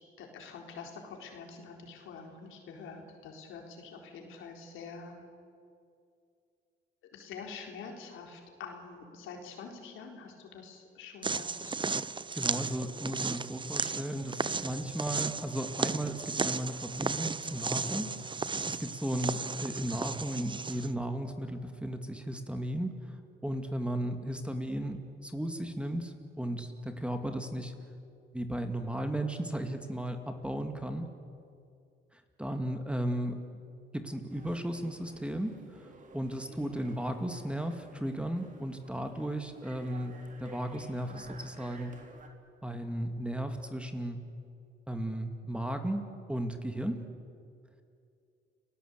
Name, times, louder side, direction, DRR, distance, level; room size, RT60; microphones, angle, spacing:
voice 1, 0.0-5.2 7.1-12.0, left 5 dB, 85° left, 2 dB, 4.1 m, -46 dB
sound 1, 11.2-20.9, right 4 dB, 25° right, 0.8 m, -35 dB
voice 2, 12.3-18.1 18.7-23.2 23.4-27.7 28.3-31.1 32.1-33.4 33.9-41.9 42.6-44.2 44.9-47.1, right 1 dB, 5° right, 6 dB, 2.3 m, -35 dB
sound 2, 34.3-42.3, right 3 dB, 40° right, 3.5 m, -53 dB
30.0 x 18.5 x 8.2 m, 2.4 s
cardioid pair, 90°, 20 cm